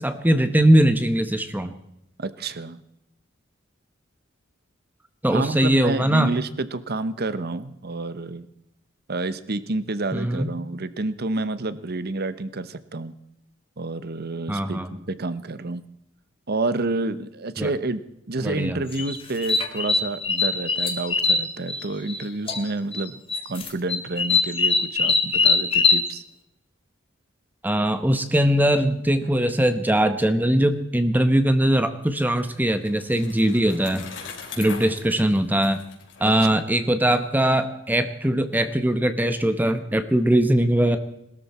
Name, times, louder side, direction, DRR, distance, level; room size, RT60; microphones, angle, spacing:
voice 1, 0.0-1.7 5.2-6.3 10.1-10.5 14.5-15.0 17.6-17.7 18.4-18.8 27.6-34.1 34.6-35.8 36.2-41.0, right 1 dB, 10° right, 9 dB, 0.9 m, -21 dB
voice 2, 2.2-2.8 5.3-8.5 9.1-13.1 13.8-15.8 16.5-18.0 18.3-23.2 23.5-26.2 29.2-29.3 36.2-36.6, right 2 dB, 55° right, 14 dB, 1.0 m, -29 dB
sound 1, 18.9-22.2 22.5-23.0 23.3-26.0, left 4 dB, 30° left, 1.9 m, -22 dB
Bicycle, 32.4-37.1, left 5 dB, 65° left, 3.8 m, -41 dB
21.0 x 13.0 x 4.3 m, 0.81 s
head